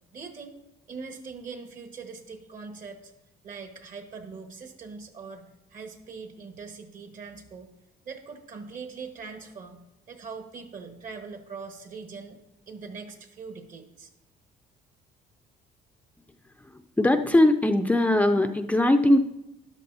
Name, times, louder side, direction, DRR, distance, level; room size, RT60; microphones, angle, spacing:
voice 1, 0.1-0.6 0.9-3.1 3.4-7.7 8.0-9.8 10.1-12.4 12.7-14.1, right 5 dB, 50° right, 5 dB, 1.6 m, -41 dB
voice 2, 16.7-19.3, left 1 dB, 10° left, 6 dB, 0.4 m, -21 dB
13.0 x 11.0 x 2.8 m, 0.89 s
cardioid pair, 110°, 17 cm